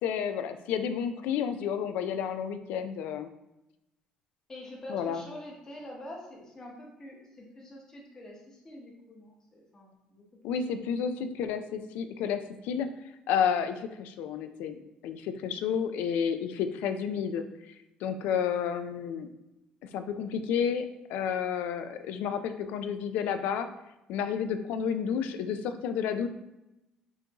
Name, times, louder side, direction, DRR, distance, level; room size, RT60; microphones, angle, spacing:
voice 1, 0.0-3.3 4.9-5.2 10.4-12.9 13.3-17.7 18.0-19.3 19.9-23.7 24.1-26.3, left 7 dB, 90° left, 9 dB, 0.4 m, -31 dB
voice 2, 4.5-10.3 15.6-15.8, left 1 dB, 20° left, -1 dB, 0.9 m, -46 dB
5.6 x 2.6 x 2.9 m, 0.94 s
cardioid pair, 170°, 3 cm